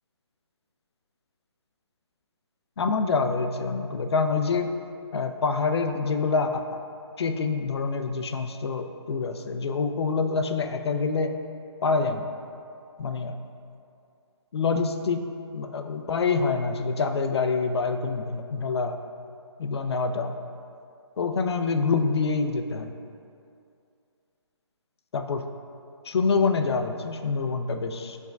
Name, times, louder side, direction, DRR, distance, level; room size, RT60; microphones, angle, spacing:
voice 1, 2.8-4.7 5.1-6.8 7.2-11.3 11.8-12.2 13.0-13.4 14.5-15.3 15.5-19.0 19.6-20.4 21.2-22.9 25.1-25.4 26.0-28.2, left 4 dB, 65° left, 6 dB, 0.4 m, -26 dB
7.0 x 3.4 x 2.2 m, 2.5 s
hypercardioid pair, 165°, 15 cm